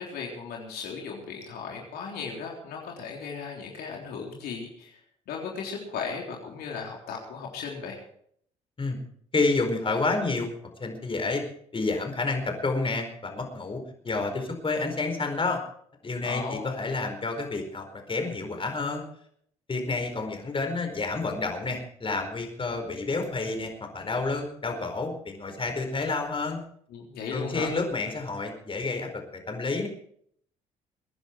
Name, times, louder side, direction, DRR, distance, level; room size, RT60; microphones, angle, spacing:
voice 1, 0.0-5.0 5.3-8.0 16.2-16.7 26.9-27.7, left 5 dB, 70° left, -1 dB, 3.6 m, -36 dB
voice 2, 9.3-10.5 10.8-11.4 11.7-15.6 16.0-19.0 19.7-26.6 27.3-29.9, left 3 dB, 30° left, 4 dB, 4.7 m, -29 dB
23.5 x 10.5 x 4.6 m, 0.64 s
hypercardioid pair, 60°, 17 cm